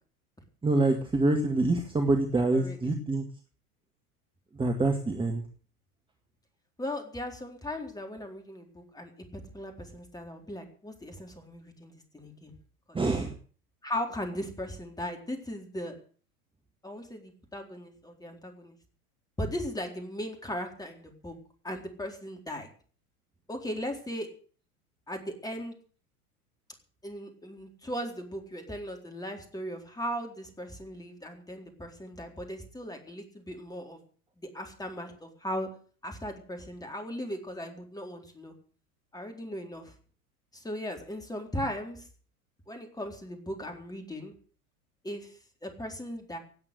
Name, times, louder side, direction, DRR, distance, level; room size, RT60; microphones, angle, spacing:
voice 1, 0.6-3.2 4.5-5.4 12.9-13.3, right 2 dB, 10° right, 4 dB, 2.0 m, -26 dB
voice 2, 2.5-2.9 6.8-12.5 12.9-13.0 13.8-15.9 16.8-18.8 19.4-21.4 21.6-22.7 23.5-24.3 25.1-25.8 27.0-34.0 34.4-35.7 36.0-38.5 39.1-39.9 40.5-42.1 42.7-44.3 45.0-46.4, equal, 10° left, 3 dB, 4.0 m, -38 dB
17.5 x 8.7 x 8.2 m, 0.43 s
figure-of-eight pair, 80°, 45 cm